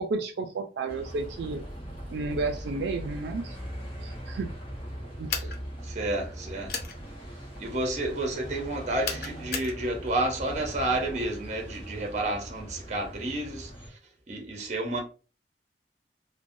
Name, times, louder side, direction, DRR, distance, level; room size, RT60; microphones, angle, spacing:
voice 1, 0.0-1.6 2.1-3.6 4.0-4.5 5.2-5.5, right 3 dB, 80° right, 0.3 m, -32 dB
Bus, 0.9-13.9, equal, 30° left, 0.9 m, -40 dB
sound 1, 5.3-5.6 6.7-6.9 9.0-9.7, left 5 dB, 60° left, 0.5 m, -32 dB
voice 2, 5.8-6.7 7.6-13.7 14.3-15.0, right 2 dB, 40° right, 0.7 m, -30 dB
3.1 x 2.1 x 2.5 m
head